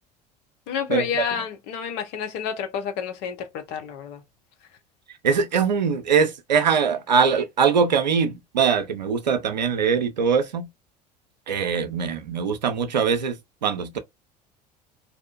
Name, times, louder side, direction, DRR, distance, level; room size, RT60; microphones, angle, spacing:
voice 1, 0.7-4.2, left 7 dB, 55° left, 0.8 m, -29 dB
voice 2, 5.2-10.7 11.5-13.4 13.6-14.0, right 6 dB, 85° right, 0.5 m, -22 dB
2.5 x 2.0 x 2.4 m
figure-of-eight pair, 70°, 21 cm